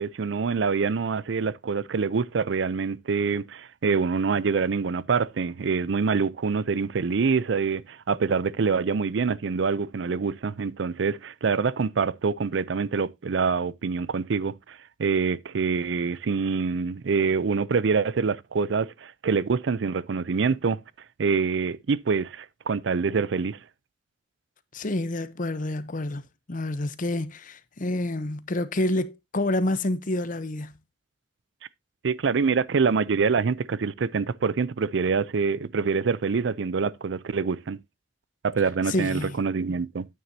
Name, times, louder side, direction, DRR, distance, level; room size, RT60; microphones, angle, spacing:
voice 1, 0.0-20.8 21.2-23.6 32.0-37.8 38.4-40.1, right 5 dB, 70° right, 0.5 m, -25 dB
voice 2, 24.7-26.2 26.5-30.7 38.9-39.4, left 1 dB, 45° left, 0.8 m, -28 dB
9.6 x 9.2 x 2.7 m
head